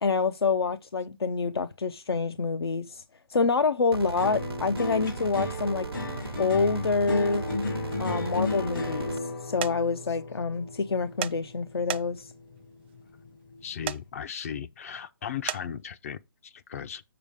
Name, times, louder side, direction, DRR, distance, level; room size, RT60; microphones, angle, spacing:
voice 1, 0.0-3.0 3.3-5.9 6.4-7.4 8.0-12.3, left 4 dB, 85° left, 0.6 m, -27 dB
sound 1, 3.9-9.2, right 4 dB, 90° right, 0.7 m, -38 dB
sound 2, 4.2-12.6 13.0-13.6, left 2 dB, 60° left, 1.4 m, -34 dB
sound 3, 9.6-9.7 11.2-11.4 11.9-12.3 13.9-14.0 15.5-15.6, right 11 dB, 30° right, 0.4 m, -31 dB
voice 2, 13.6-17.0, left 8 dB, 35° left, 0.4 m, -37 dB
6.8 x 6.5 x 3.6 m
hypercardioid pair, 150°, 13 cm